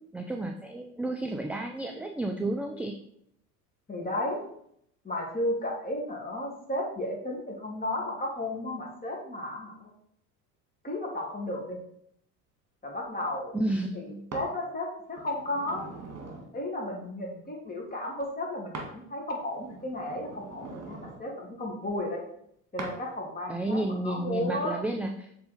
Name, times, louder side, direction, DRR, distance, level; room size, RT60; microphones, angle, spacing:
voice 1, 0.1-3.0 13.5-14.3 23.5-25.3, right 1 dB, 5° right, 4 dB, 0.4 m, -31 dB
voice 2, 3.9-4.4 5.0-9.9 10.8-11.8 12.8-13.5 14.3-15.9 16.5-22.2 22.7-24.8, left 1 dB, 20° left, -1 dB, 2.5 m, -33 dB
sound 1, 14.3-14.5 15.1-16.5 18.7-18.9 19.4-21.2 22.8-23.0 23.7-24.0, right 3 dB, 35° right, 2.0 m, -42 dB
7.0 x 3.8 x 5.0 m, 0.70 s
hypercardioid pair, 65°, 45 cm